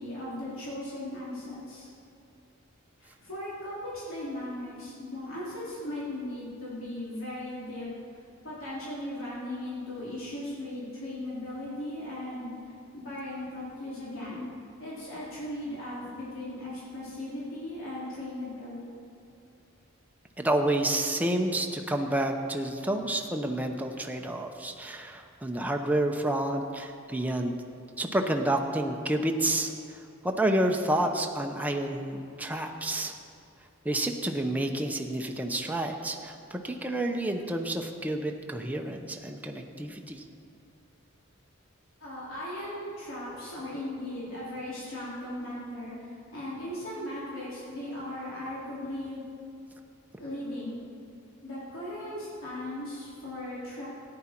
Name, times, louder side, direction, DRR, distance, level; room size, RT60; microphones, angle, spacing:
voice 1, 0.0-1.9 3.0-7.9 8.4-14.5 14.8-19.1 42.0-49.2 50.2-50.8 51.4-53.9, left 1 dB, 85° left, -8 dB, 3.4 m, -37 dB
voice 2, 20.4-27.6 28.0-33.1 33.8-40.2, right 1 dB, 10° right, 3 dB, 0.7 m, -29 dB
14.0 x 9.7 x 4.5 m, 2.5 s
head